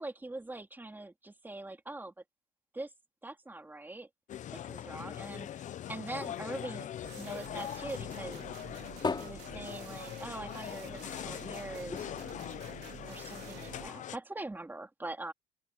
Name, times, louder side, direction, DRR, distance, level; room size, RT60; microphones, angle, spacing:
voice 1, 0.0-2.1 2.7-2.9 3.2-4.1 4.5-8.4 9.2-12.1 13.1-15.3, right 2 dB, 10° right, 2.5 m, -43 dB
sound 1, 4.3-14.2, left 11 dB, 50° left, 0.5 m, -42 dB
sound 2, 5.3-7.9 8.3-10.6 10.9-11.0 11.3-11.4 11.9-13.4 14.0-14.1, left 4 dB, 25° left, 3.6 m, -41 dB
sound 3, 7.0-13.9, right 15 dB, 85° right, 3.4 m, -50 dB
open air
cardioid pair, 110°, 17 cm